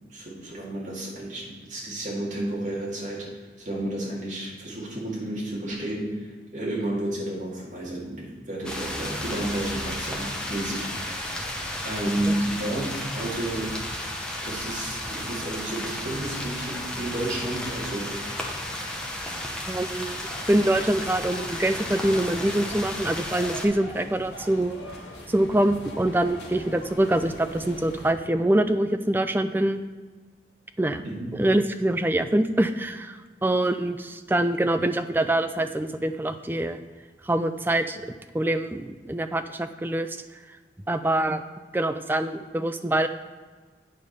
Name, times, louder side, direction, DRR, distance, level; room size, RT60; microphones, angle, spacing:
voice 1, 0.1-3.3 3.6-11.3 11.8-13.8 14.4-18.2 31.0-31.2, right 1 dB, 45° right, -4 dB, 2.3 m, -31 dB
sound 1, 8.6-23.7, left 1 dB, 5° left, 0.9 m, -33 dB
voice 2, 19.7-20.2 20.5-24.8 25.3-29.8 30.8-31.0 31.3-36.8 37.2-38.0 38.3-40.2 40.9-41.4 41.7-43.1, right 1 dB, 10° right, 9 dB, 0.3 m, -24 dB
sound 2, 20.2-28.1, equal, 75° left, 1.8 m, -41 dB
9.0 x 4.9 x 5.4 m, 1.4 s
head